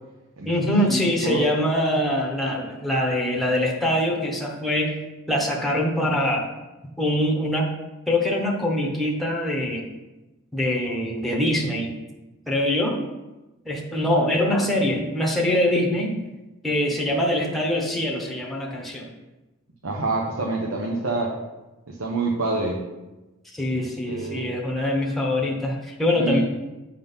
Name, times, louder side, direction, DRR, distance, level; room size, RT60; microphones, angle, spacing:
voice 1, 0.4-5.0 5.3-6.5 7.0-7.7 8.1-9.9 10.5-11.9 12.5-13.0 13.6-16.2 16.6-19.1 23.5-26.4, left 1 dB, ahead, -2 dB, 0.9 m, -23 dB
voice 2, 19.8-21.4 21.9-22.8 23.7-24.5 26.2-26.4, right 2 dB, 70° right, -1 dB, 0.9 m, -27 dB
8.7 x 3.8 x 5.5 m, 1.1 s
head